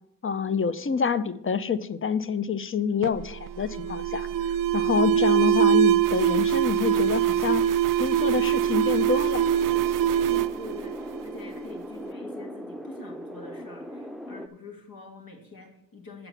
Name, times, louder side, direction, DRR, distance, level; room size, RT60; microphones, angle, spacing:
voice 1, 0.2-4.3 4.7-7.6 8.0-9.4, left 6 dB, 35° left, 15 dB, 0.6 m, -27 dB
Alarm, 3.0-11.6, right 10 dB, 65° right, 0.5 m, -23 dB
sound 1, 8.1-14.5, equal, ahead, 0.7 m, -39 dB
voice 2, 10.3-16.3, left 3 dB, 80° left, 2 dB, 1.9 m, -45 dB
8.6 x 5.8 x 7.0 m, 0.82 s
cardioid pair, 55°, 35 cm